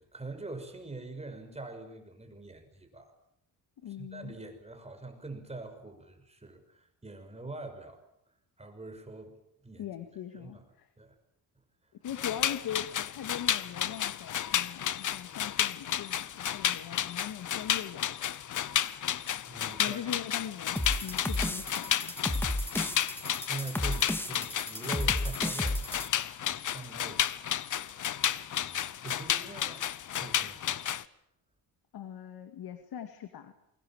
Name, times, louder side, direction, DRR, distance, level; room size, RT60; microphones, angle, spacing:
voice 1, 0.0-3.1 3.8-8.0 8.6-9.9 10.3-10.7 11.0-11.2 19.4-20.1 23.4-27.3 27.7-28.2 28.6-29.8 30.1-30.9, right 3 dB, 15° right, 6 dB, 6.2 m, -44 dB
voice 2, 3.8-4.3 9.8-10.9 12.0-18.3 19.7-22.4 31.9-33.5, left 9 dB, 70° left, 8 dB, 2.4 m, -41 dB
sound 1, 12.1-31.0, left 10 dB, 55° left, 1.0 m, -32 dB
sound 2, 20.8-26.1, left 1 dB, 5° left, 2.1 m, -33 dB
28.0 x 23.0 x 7.5 m, 0.76 s
cardioid pair, 95°, 37 cm